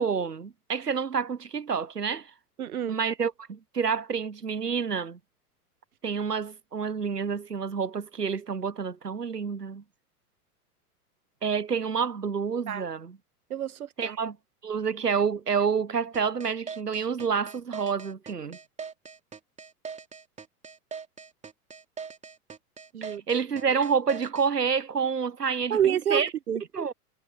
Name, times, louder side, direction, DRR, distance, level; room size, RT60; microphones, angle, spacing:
voice 1, 0.0-2.3 2.9-5.2 6.0-9.8 11.4-13.2 14.0-14.4 14.6-18.6 23.0-26.3 26.7-26.9, right 6 dB, 85° right, 1.0 m, -28 dB
voice 2, 2.6-3.0 12.7-12.9 13.5-14.2 22.9-23.2 25.7-26.6, right 9 dB, 65° right, 1.7 m, -28 dB
sound 1, 16.1-24.5, right 6 dB, 15° right, 2.4 m, -41 dB
figure-of-eight pair, 95°, 46 cm